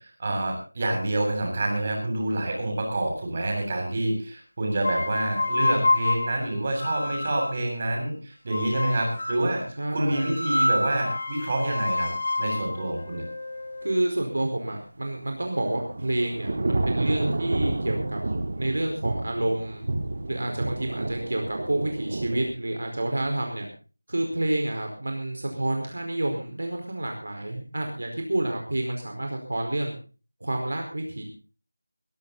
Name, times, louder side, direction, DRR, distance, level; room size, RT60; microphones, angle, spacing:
voice 1, 0.2-9.6 9.9-12.1 12.4-13.2, right 1 dB, 30° right, 1 dB, 7.6 m, -27 dB
sound 1, 4.8-7.6 8.5-9.5 10.1-14.1, left 2 dB, 50° left, 6.0 m, -28 dB
voice 2, 9.8-10.4 13.8-18.2 18.6-19.8 20.3-23.7 24.1-30.0 30.4-31.2, right 1 dB, 60° right, 3 dB, 4.7 m, -29 dB
Thunder / Rain, 15.1-22.5, right 2 dB, 45° right, 2.1 m, -30 dB
21.5 x 13.0 x 4.1 m, 0.36 s
figure-of-eight pair, 170°, 0 cm